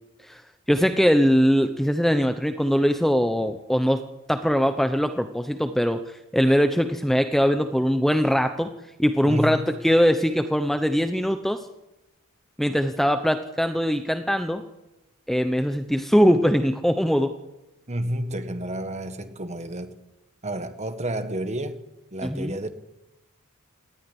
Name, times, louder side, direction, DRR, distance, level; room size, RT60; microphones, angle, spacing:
voice 1, 0.7-4.0 4.3-8.7 9.0-11.7 12.6-14.6 15.3-17.3 22.2-22.5, equal, ahead, 0.8 m, -21 dB
voice 2, 9.2-9.7 17.9-20.0 20.4-21.8 22.1-22.7, right 1 dB, 30° right, 1.6 m, -30 dB
18.5 x 14.0 x 9.9 m
head